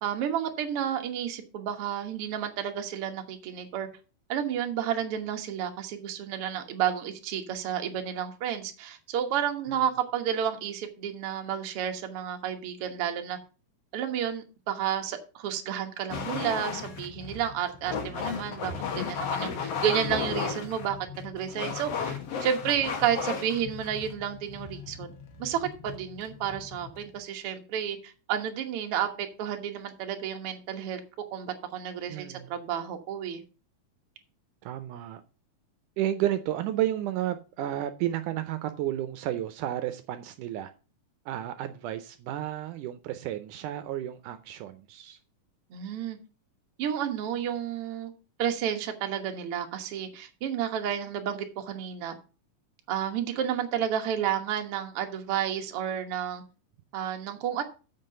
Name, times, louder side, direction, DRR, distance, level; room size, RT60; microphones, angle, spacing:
voice 1, 0.0-3.9 4.3-13.4 13.9-25.1 25.4-31.0 31.3-33.4 45.7-46.2 46.8-48.1 48.4-52.2 52.9-56.4 56.9-57.6, right 9 dB, 55° right, 5 dB, 1.8 m, -31 dB
sound 1, 16.1-27.2, left 6 dB, 55° left, 2.2 m, -35 dB
voice 2, 32.1-32.5 34.6-35.2 36.0-40.7 41.3-45.2, right 12 dB, 80° right, 9 dB, 2.1 m, -32 dB
7.4 x 5.8 x 6.5 m, 0.34 s
omnidirectional pair, 3.8 m